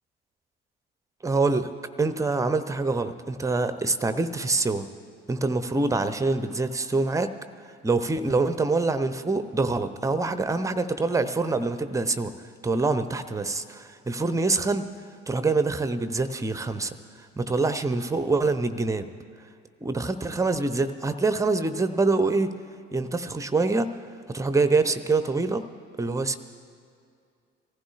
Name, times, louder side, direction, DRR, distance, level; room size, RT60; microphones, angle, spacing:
voice 1, 1.2-1.7 2.0-4.9 5.3-7.3 7.8-12.3 12.6-14.9 15.3-16.9 17.4-19.1 19.8-22.5 22.9-23.9 24.3-25.6 26.0-26.4, right 3 dB, 10° right, 11 dB, 0.6 m, -25 dB
25.0 x 15.0 x 2.4 m, 2.3 s
figure-of-eight pair, 50°, 32 cm